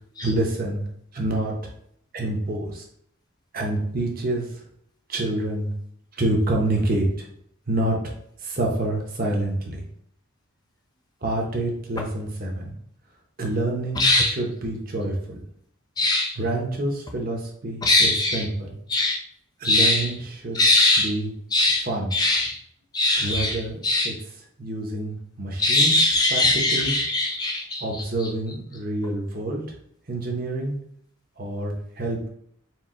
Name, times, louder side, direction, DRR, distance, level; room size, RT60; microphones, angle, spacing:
voice 1, 0.2-0.8 1.1-1.7 2.1-2.8 3.5-4.6 5.1-5.7 6.1-7.3 7.7-8.1 8.4-9.8 11.2-12.7 13.4-15.4 16.4-18.8 19.6-20.6 21.0-21.3 21.8-22.1 23.2-24.2 24.6-25.9 26.3-27.0 27.8-29.6 30.1-30.8 31.4-32.3, right 1 dB, 45° right, 0 dB, 0.9 m, -27 dB
voice 2, 14.0-14.3 16.0-16.3 17.8-18.4 18.9-19.2 19.6-20.1 20.5-21.1 21.5-21.8 22.1-22.6 22.9-23.6 23.8-24.1 25.6-27.8, left 2 dB, 20° left, 2 dB, 0.3 m, -20 dB
4.5 x 2.3 x 3.7 m, 0.69 s
head